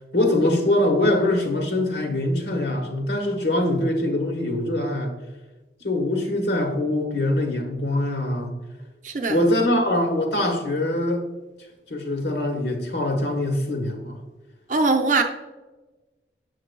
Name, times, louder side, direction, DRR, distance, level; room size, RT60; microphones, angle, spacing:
voice 1, 0.1-5.1 5.8-8.5 9.3-11.2 11.9-14.2, left 1 dB, 70° left, 3 dB, 1.1 m, -23 dB
voice 2, 9.0-9.4 14.7-15.2, right 3 dB, 45° right, 4 dB, 0.6 m, -21 dB
7.3 x 6.6 x 2.2 m, 1.1 s
head